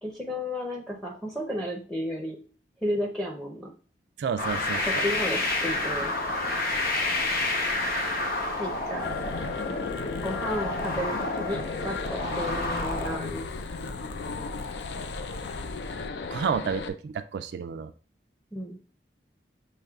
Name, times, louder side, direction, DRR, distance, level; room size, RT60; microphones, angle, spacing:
voice 1, 0.0-2.4 2.8-3.7 4.8-6.1 8.6-9.1 9.7-9.9 10.1-13.4 18.5-18.8, equal, 5° left, 0 dB, 0.6 m, -33 dB
voice 2, 4.2-5.0 16.3-17.9, right 6 dB, 75° right, 9 dB, 0.3 m, -30 dB
sound 1, 4.4-13.2, left 2 dB, 55° left, 0.8 m, -29 dB
sound 2, 9.0-16.9, left 4 dB, 75° left, 0.4 m, -35 dB
6.4 x 3.1 x 2.3 m, 0.39 s
head